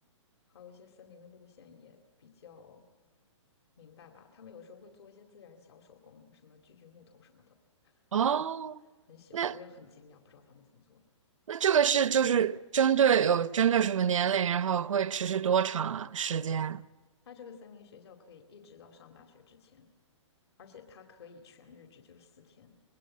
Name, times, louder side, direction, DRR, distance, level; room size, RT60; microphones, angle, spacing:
voice 1, 0.5-2.8 3.8-7.6 7.8-8.0 8.4-8.5 9.0-11.0 17.3-19.9 20.6-22.8, left 6 dB, 55° left, 2.4 m, -54 dB
voice 2, 8.1-8.8 9.3-9.5 11.5-16.8, right 8 dB, 85° right, 0.8 m, -26 dB
26.0 x 21.5 x 8.7 m
hypercardioid pair, 170°, 16 cm